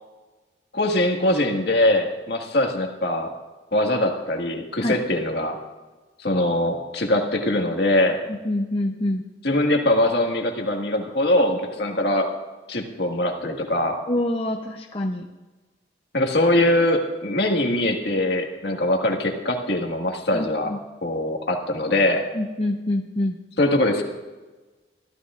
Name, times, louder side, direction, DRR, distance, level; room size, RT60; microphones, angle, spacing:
voice 1, 0.7-3.3 3.7-5.6 6.2-8.2 9.4-12.3 12.7-14.0 16.1-20.7 21.0-22.2 23.6-24.0, left 1 dB, 65° left, 2 dB, 1.9 m, -22 dB
voice 2, 8.3-9.2 14.1-15.3 20.3-20.8 22.3-23.4, left 1 dB, 30° left, 2 dB, 0.7 m, -26 dB
24.0 x 14.5 x 2.5 m, 1.2 s
head